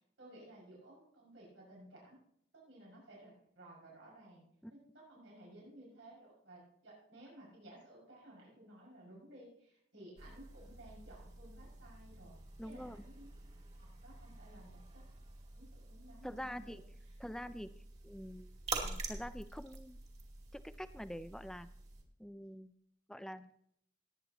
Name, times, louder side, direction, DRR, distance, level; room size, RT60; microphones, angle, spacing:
voice 1, 0.0-2.2 2.5-4.4 4.7-13.4 13.8-15.0 15.5-16.7, right 1 dB, 90° right, -4 dB, 6.2 m, -57 dB
sound 1, 10.2-22.0, right 3 dB, 35° right, 2.3 m, -48 dB
voice 2, 12.6-13.0 16.2-16.8 17.2-17.7 18.0-20.0 20.5-21.7 22.2-22.7 23.1-23.6, equal, 5° left, 11 dB, 0.4 m, -46 dB
19.0 x 9.7 x 3.0 m, 0.71 s
head